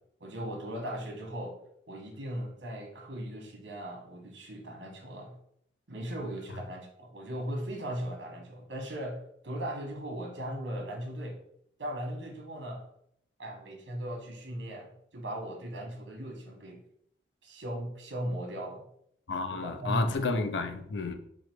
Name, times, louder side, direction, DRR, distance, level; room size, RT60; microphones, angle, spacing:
voice 1, 0.2-1.6 1.9-5.3 5.9-11.4 11.8-12.8 13.4-16.8 17.4-18.9 19.5-20.0, equal, 75° right, 2 dB, 1.2 m, -38 dB
voice 2, 19.3-21.1, left 3 dB, 75° left, 8 dB, 0.5 m, -31 dB
4.6 x 2.4 x 4.6 m, 0.69 s
head